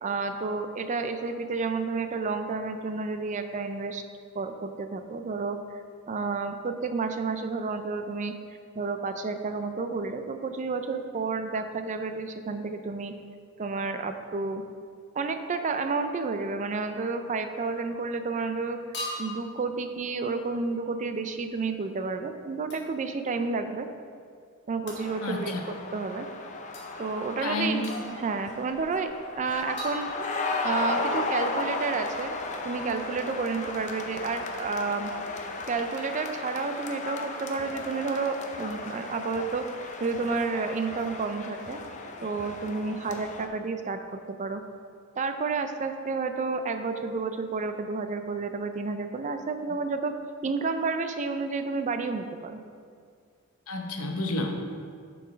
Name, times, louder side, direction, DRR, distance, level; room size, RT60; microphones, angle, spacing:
voice 1, 0.0-4.0 4.3-5.6 6.1-8.3 8.8-13.1 13.6-14.6 15.2-18.8 19.2-23.9 24.7-26.3 27.0-27.8 28.2-30.1 30.6-32.4 32.6-35.1 35.7-41.8 42.2-44.6 45.2-50.1 50.4-52.6, right 4 dB, 35° right, 8 dB, 0.4 m, -30 dB
sound 1, 17.6-17.9 18.9-19.5 22.7-22.9 24.9-25.1 26.7-26.9 27.8-28.3 29.8-30.6, left 1 dB, 50° left, 1.6 m, -39 dB
sound 2, 25.0-43.5, left 3 dB, 35° left, 0.5 m, -35 dB
voice 2, 25.2-25.6 27.4-27.8 53.7-54.6, left 2 dB, 70° left, 3 dB, 0.8 m, -30 dB
7.0 x 4.7 x 5.0 m, 2.2 s
head